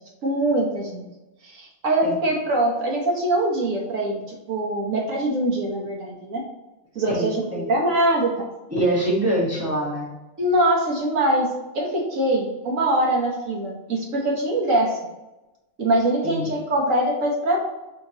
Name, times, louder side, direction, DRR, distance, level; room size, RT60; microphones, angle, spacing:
voice 1, 0.2-1.1 1.4-6.4 6.9-8.5 10.4-15.0 15.8-17.6, right 1 dB, 50° right, -2 dB, 1.0 m, -23 dB
voice 2, 7.1-7.7 8.7-10.1 16.2-16.5, right 1 dB, 15° right, -6 dB, 0.5 m, -24 dB
5.7 x 2.9 x 2.8 m, 0.99 s
omnidirectional pair, 2.3 m